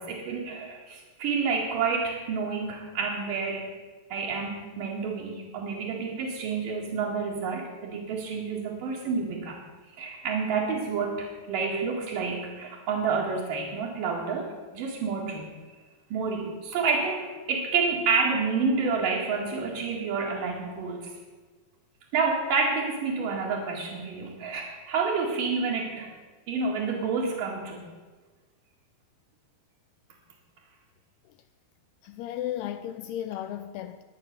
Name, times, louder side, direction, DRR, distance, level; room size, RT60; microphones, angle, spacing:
voice 1, 0.0-3.7 4.1-9.6 10.0-15.5 16.1-21.1 22.1-26.1 26.5-27.9, right 5 dB, 60° right, 3.6 m, -29 dB
voice 2, 32.0-34.0, left 11 dB, 80° left, 2.6 m, -34 dB
23.0 x 9.0 x 6.9 m
omnidirectional pair, 4.7 m